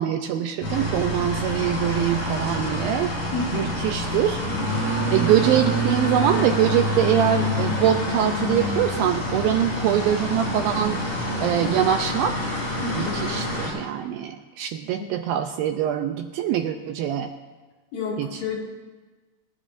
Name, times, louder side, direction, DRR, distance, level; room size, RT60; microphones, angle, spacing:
voice 1, 0.0-3.1 3.5-4.4 5.1-11.1 11.4-12.4 12.9-17.3 18.2-18.4, right 10 dB, 80° right, 6 dB, 2.2 m, -23 dB
sound 1, 0.6-13.7, equal, 45° left, 6.7 m, -26 dB
voice 2, 3.3-3.7 12.8-13.2 15.0-15.1 17.9-18.8, left 4 dB, 65° left, -2 dB, 3.8 m, -31 dB
26.5 x 13.5 x 2.6 m, 1.3 s
omnidirectional pair, 4.6 m